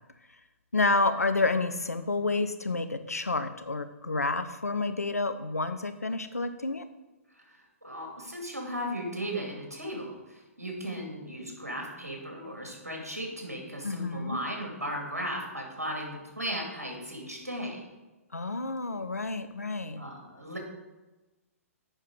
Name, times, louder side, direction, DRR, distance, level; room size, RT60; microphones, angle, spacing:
voice 1, 0.7-6.8 13.8-14.4 18.3-20.0, left 3 dB, 85° left, 10 dB, 0.7 m, -29 dB
voice 2, 7.3-17.8 20.0-20.6, equal, 85° right, 0 dB, 2.5 m, -36 dB
8.9 x 5.6 x 4.8 m, 1.1 s
figure-of-eight pair, 120°, 8 cm